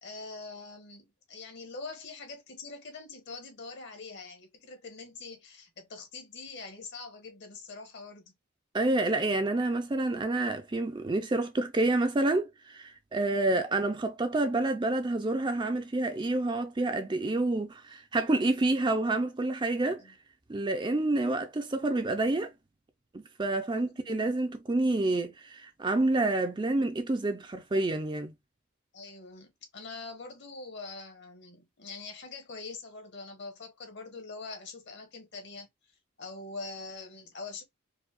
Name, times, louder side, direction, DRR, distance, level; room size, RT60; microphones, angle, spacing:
voice 1, 0.0-8.3 13.1-13.5 20.0-20.1 23.8-24.1 28.9-35.7 36.2-37.6, left 3 dB, 55° left, 1.2 m, -44 dB
voice 2, 8.7-20.0 20.5-22.5 23.1-28.3, right 2 dB, 20° right, 0.4 m, -28 dB
4.7 x 2.3 x 2.4 m
head